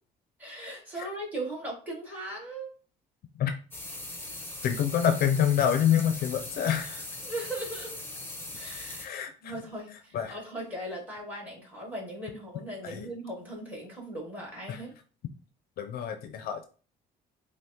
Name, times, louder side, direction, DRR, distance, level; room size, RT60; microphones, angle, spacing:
voice 1, 0.4-2.7 7.2-8.0 8.5-9.1 9.4-14.9, right 1 dB, 10° right, -2 dB, 2.1 m, -38 dB
sound 1, 3.7-9.1, left 2 dB, 15° left, 0.9 m, -40 dB
voice 2, 4.6-7.0 9.0-9.5 10.1-10.4 12.8-13.1 14.7-14.8 15.8-16.6, left 9 dB, 65° left, 8 dB, 0.5 m, -27 dB
6.0 x 2.1 x 2.8 m, 0.38 s
cardioid pair, 110°, 17 cm